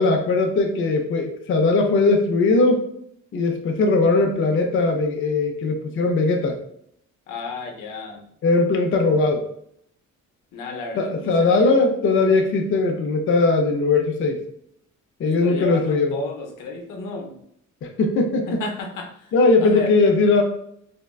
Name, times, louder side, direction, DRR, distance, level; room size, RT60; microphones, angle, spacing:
voice 1, 0.0-2.8 3.3-6.6 8.4-9.4 10.9-14.4 15.2-16.2 18.0-18.6 19.3-20.4, left 3 dB, 40° left, 3 dB, 0.4 m, -19 dB
voice 2, 7.3-8.2 10.5-11.7 15.2-17.3 18.5-19.1 19.6-19.9, left 2 dB, 85° left, 3 dB, 0.6 m, -33 dB
3.4 x 2.1 x 2.2 m, 0.71 s
cardioid pair, 125°, 31 cm